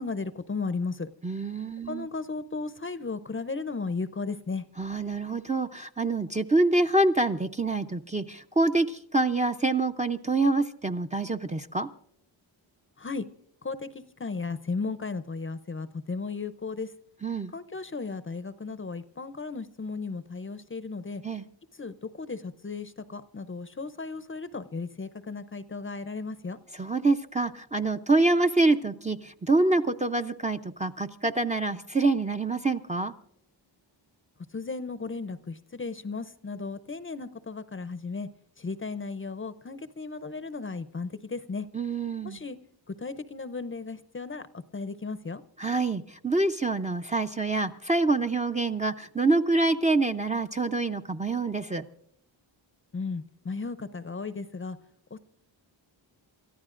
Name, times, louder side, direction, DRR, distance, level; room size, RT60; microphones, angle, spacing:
voice 1, 0.0-1.1 1.9-4.6 13.0-13.2 13.6-16.9 17.5-21.2 21.8-26.6 34.5-38.3 38.6-41.7 42.2-42.6 43.0-44.4 44.7-45.4 52.9-54.8 55.1-55.2, left 4 dB, 25° left, 0.6 m, -35 dB
voice 2, 1.2-2.1 4.8-11.9 17.2-17.5 21.2-21.4 26.7-33.1 41.7-42.4 45.6-51.8, right 2 dB, 15° right, 0.5 m, -26 dB
28.5 x 14.0 x 2.5 m
cardioid pair, 80°, 46 cm